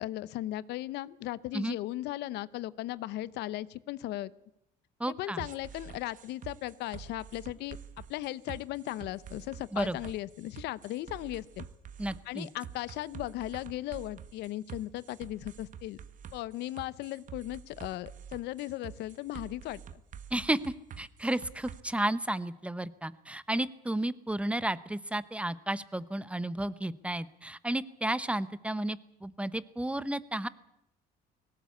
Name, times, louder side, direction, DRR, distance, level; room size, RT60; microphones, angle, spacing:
voice 1, 0.0-4.3 5.1-7.8 8.1-11.6 12.3-16.0 16.3-19.8, left 15 dB, 80° left, 19 dB, 0.7 m, -37 dB
voice 2, 5.0-5.5 9.7-10.0 12.0-12.5 20.3-30.5, right 1 dB, 5° right, 16 dB, 0.8 m, -32 dB
sound 1, 5.4-21.8, right 8 dB, 50° right, 1.1 m, -47 dB
19.0 x 17.5 x 8.4 m, 0.84 s
cardioid pair, 110°, 17 cm